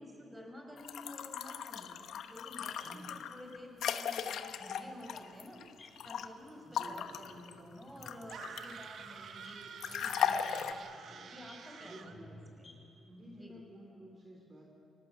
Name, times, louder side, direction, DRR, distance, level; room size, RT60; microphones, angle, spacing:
voice 1, 0.0-1.9 2.3-5.6 6.0-12.7 13.3-13.6, left 1 dB, 10° right, 1 dB, 5.8 m, -51 dB
sound 1, 0.8-6.3 6.7-8.8 9.8-10.7, left 8 dB, 75° left, 1.0 m, -37 dB
sound 2, 2.5-13.4, left 2 dB, 20° left, 6.9 m, -60 dB
voice 2, 2.8-3.2 6.6-7.5 11.8-12.6 13.0-14.7, right 1 dB, 35° right, 0 dB, 3.3 m, -53 dB
sound 3, 8.3-12.2, right 6 dB, 60° right, 1.4 m, -49 dB
26.5 x 18.0 x 8.1 m, 2.8 s
cardioid pair, 90°, 0 cm